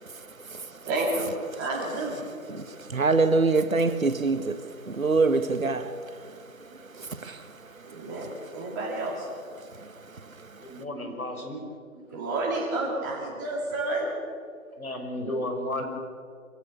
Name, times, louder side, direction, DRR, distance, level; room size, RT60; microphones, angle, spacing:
voice 1, 0.8-1.3 1.6-2.3 6.8-7.1 7.8-9.3 12.1-14.1, right 2 dB, 15° right, 2.6 m, -30 dB
voice 2, 2.6-5.9 7.0-7.5 9.8-9.9, right 3 dB, 70° right, 1.7 m, -25 dB
voice 3, 10.6-11.6 14.8-15.8, left 1 dB, 75° left, 5.7 m, -33 dB
25.5 x 16.5 x 6.9 m
figure-of-eight pair, 155°, 43 cm